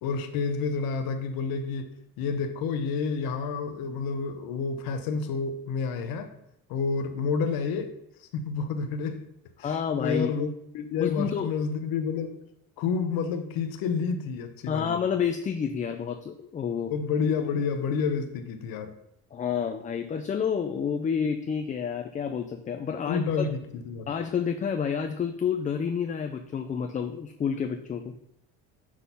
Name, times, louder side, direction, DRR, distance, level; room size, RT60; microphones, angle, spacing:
voice 1, 0.0-6.3 6.7-8.0 8.3-9.3 9.6-12.4 12.8-15.0 16.9-19.0 23.0-24.1, left 5 dB, 75° left, 7 dB, 0.8 m, -29 dB
voice 2, 9.6-10.5 11.0-11.5 14.7-16.9 19.3-23.2 24.1-28.1, left 7 dB, 20° left, 5 dB, 0.4 m, -29 dB
6.2 x 3.8 x 5.5 m, 0.78 s
cardioid pair, 125°, 36 cm